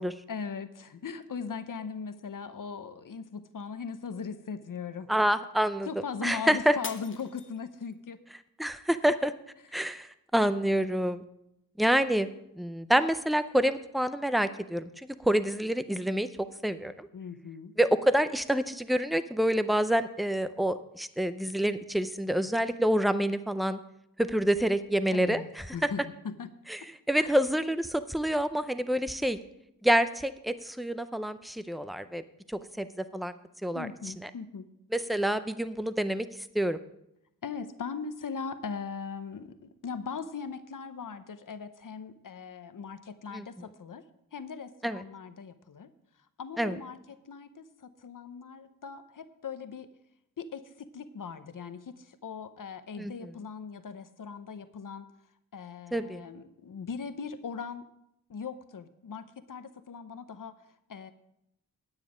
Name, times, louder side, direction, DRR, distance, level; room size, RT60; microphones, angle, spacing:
voice 1, 0.3-5.1 5.9-8.2 17.1-17.7 25.1-26.5 26.8-26.9 27.2-27.3 33.7-34.7 37.4-44.0 44.3-45.9 46.4-49.9 50.4-55.1 55.5-57.9 58.3-60.6 60.9-61.1, left 6 dB, 65° left, 11 dB, 0.8 m, -39 dB
voice 2, 5.1-5.9 6.2-6.8 8.6-9.3 9.7-11.2 11.8-12.3 12.6-14.9 15.2-16.3 16.6-17.1 17.8-23.8 24.2-25.4 26.7-26.8 27.1-29.4 29.8-32.2 32.5-33.3 33.6-33.9 34.2-34.3 34.9-36.3 36.5-36.8 43.3-43.5 44.8-45.0 46.6-46.8 53.0-53.1 55.9-56.2, right 1 dB, ahead, 12 dB, 0.5 m, -27 dB
Shatter, 6.8-8.1 8.7-9.1 9.7-9.8, left 4 dB, 35° left, 0.8 m, -43 dB
9.7 x 9.1 x 5.0 m, 0.80 s
wide cardioid pair, 115°, 34 cm